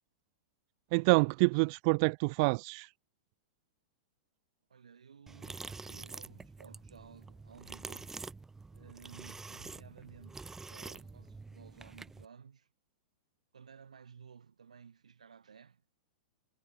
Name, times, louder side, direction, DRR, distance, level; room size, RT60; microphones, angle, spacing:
voice 1, 0.9-2.9, right 32 dB, 50° right, 0.6 m, -27 dB
voice 2, 4.7-8.1 8.7-12.7 13.5-16.0, right 6 dB, 80° right, 5.9 m, -55 dB
sound 1, 5.3-12.2, right 3 dB, 10° right, 1.2 m, -47 dB
hypercardioid pair, 105°, 4 cm